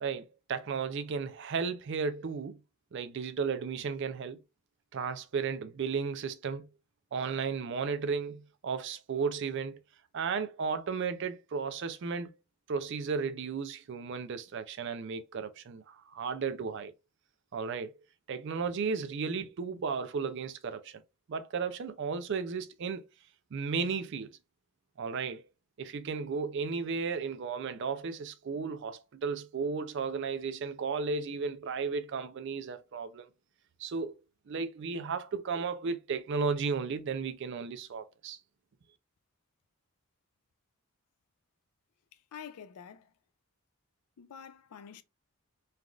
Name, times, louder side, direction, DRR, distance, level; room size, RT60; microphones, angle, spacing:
voice 1, 0.0-2.6 2.9-4.4 4.9-6.7 7.1-9.8 10.1-12.3 12.7-16.9 17.5-17.9 18.3-21.0 21.3-23.0 23.5-24.3 25.0-25.4 25.8-33.3 33.8-34.2 34.5-38.4, right 5 dB, 55° right, 0.4 m, -34 dB
voice 2, 42.1-43.1 44.2-45.0, left 7 dB, 90° left, 0.4 m, -48 dB
3.3 x 2.4 x 2.3 m
head